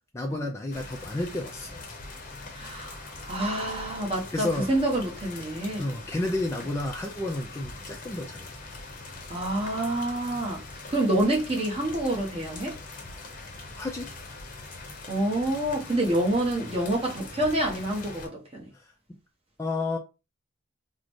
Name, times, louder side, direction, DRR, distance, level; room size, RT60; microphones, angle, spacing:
voice 1, 0.1-1.8 4.3-4.7 5.8-8.5 13.8-14.1 18.8-18.9 19.6-20.0, left 2 dB, 15° left, 0.3 m, -31 dB
sound 1, 0.7-18.3, left 3 dB, 40° left, 0.7 m, -42 dB
voice 2, 2.5-6.0 9.3-12.8 15.1-18.7, right 1 dB, 30° right, 0.9 m, -27 dB
3.7 x 2.1 x 3.1 m
head